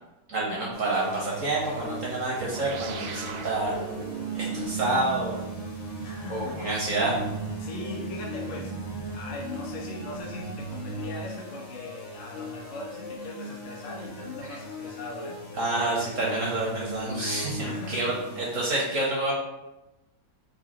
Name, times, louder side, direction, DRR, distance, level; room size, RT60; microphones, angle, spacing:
voice 1, 0.3-3.8 4.3-5.3 6.3-7.2 15.5-19.3, right 2 dB, 55° right, -5 dB, 0.9 m, -28 dB
sound 1, 0.7-18.7, equal, 50° left, 0.8 m, -39 dB
sound 2, 2.4-11.2, right 7 dB, 75° right, 1.2 m, -38 dB
voice 2, 6.0-6.8 7.6-8.8 9.1-15.4 17.6-18.1, left 3 dB, 80° left, -2 dB, 1.7 m, -39 dB
4.2 x 2.7 x 4.1 m, 0.99 s
omnidirectional pair, 2.4 m